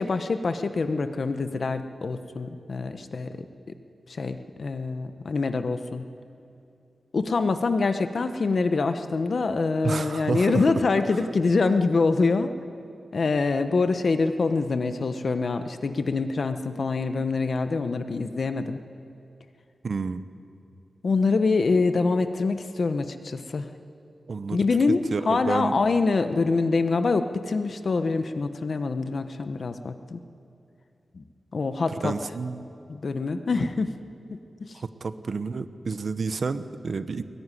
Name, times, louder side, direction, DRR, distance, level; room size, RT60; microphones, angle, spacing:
voice 1, 0.0-3.5 4.1-6.0 7.1-12.5 13.1-18.8 21.0-23.7 24.5-25.0 25.3-30.2 31.1-31.2 31.5-32.1 32.9-33.9 34.3-34.7, left 4 dB, 55° left, 9 dB, 1.0 m, -25 dB
voice 2, 9.8-10.7 19.8-20.2 24.3-24.6 25.1-25.7 31.9-32.7 34.7-37.2, right 4 dB, 55° right, 11 dB, 1.0 m, -30 dB
22.0 x 19.5 x 9.9 m, 2.5 s
wide cardioid pair, 140°, 0 cm